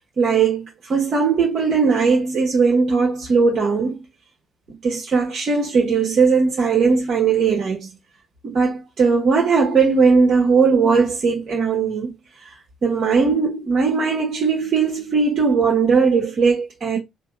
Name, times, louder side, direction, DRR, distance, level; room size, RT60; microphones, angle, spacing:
voice 1, 0.2-0.6 0.9-3.9 4.8-7.9 8.4-12.1 12.8-17.0, right 5 dB, 50° right, 1.2 m, -18 dB
3.4 x 2.3 x 4.0 m
hypercardioid pair, 45°, 0 cm